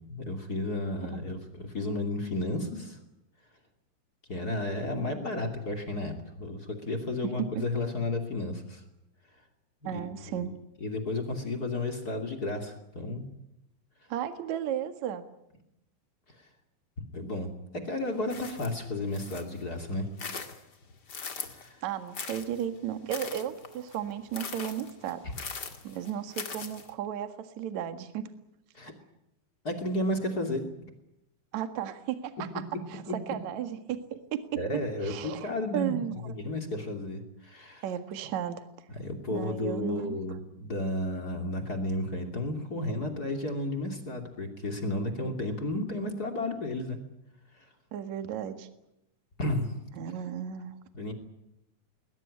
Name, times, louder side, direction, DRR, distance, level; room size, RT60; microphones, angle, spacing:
voice 1, 0.1-3.0 4.3-8.8 9.9-10.1 10.3-10.5 10.8-13.2 17.1-17.5 17.8-20.1 21.4-21.8 25.2-25.3 28.7-28.9 29.6-30.6 33.1-33.2 34.5-37.8 39.0-47.0 47.6-47.7 49.4-49.8 50.9-51.1, left 1 dB, 30° left, 4 dB, 2.2 m, -32 dB
voice 2, 9.8-10.5 14.1-15.2 21.8-25.6 25.8-28.3 31.5-32.3 32.9-34.6 35.0-36.3 37.8-38.6 39.3-40.2 47.9-48.7 50.0-50.8, right 10 dB, 55° right, 8 dB, 2.2 m, -34 dB
sound 1, 18.3-19.6 20.0-21.7 22.1-26.9, left 5 dB, 70° left, 0.9 m, -41 dB
21.0 x 20.5 x 9.9 m, 0.85 s
omnidirectional pair, 5.6 m